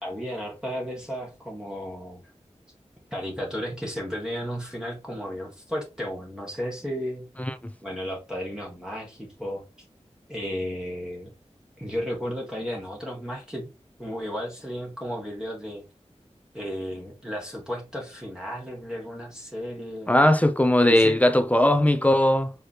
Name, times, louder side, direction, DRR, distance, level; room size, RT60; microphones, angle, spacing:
voice 1, 0.0-2.2 3.1-7.3 7.8-9.6 10.3-11.3 11.8-13.7 14.0-15.8 16.5-20.2 20.8-21.2, equal, 5° right, 1.7 m, -33 dB
voice 2, 20.1-22.5, left 1 dB, 10° left, 0.7 m, -19 dB
4.8 x 3.1 x 3.0 m
wide cardioid pair, 50°, 12 cm